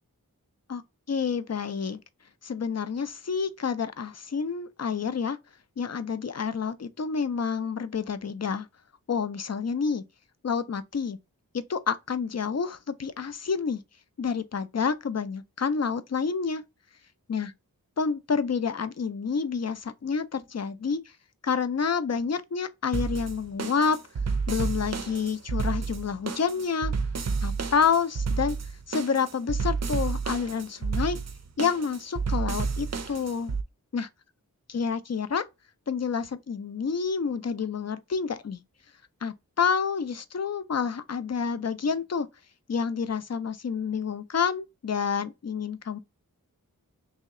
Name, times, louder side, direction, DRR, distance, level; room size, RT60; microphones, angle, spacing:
voice 1, 1.1-2.0 2.4-5.4 5.8-8.7 9.1-10.0 10.4-11.2 11.5-13.8 14.2-16.6 17.3-17.5 18.0-21.0 21.4-24.0 24.5-26.9 27.4-28.6 28.9-31.2 31.6-33.5 33.9-34.1 34.7-35.4 35.9-38.6 39.2-42.3 42.7-46.0, left 6 dB, 45° left, 0.5 m, -28 dB
sound 1, 22.9-33.6, right 4 dB, 50° right, 0.5 m, -30 dB
3.1 x 2.8 x 3.6 m
wide cardioid pair, 45°, 35 cm